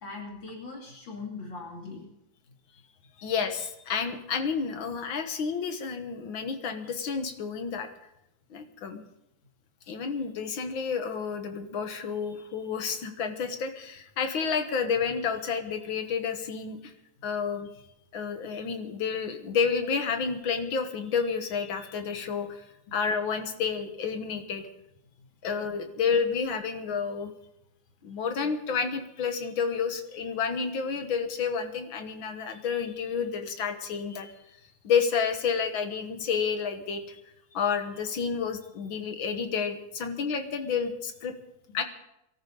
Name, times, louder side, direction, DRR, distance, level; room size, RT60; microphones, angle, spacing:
voice 1, 0.0-2.1, left 3 dB, 75° left, -2 dB, 3.6 m, -40 dB
voice 2, 3.2-7.9 8.5-9.0 9.9-16.9 17.2-17.7 18.1-22.7 22.9-24.6 25.4-27.3 28.0-34.3 34.8-37.2 37.5-41.3 41.7-41.8, left 6 dB, 90° left, 7 dB, 2.2 m, -30 dB
24.0 x 13.5 x 4.0 m, 0.85 s
omnidirectional pair, 2.1 m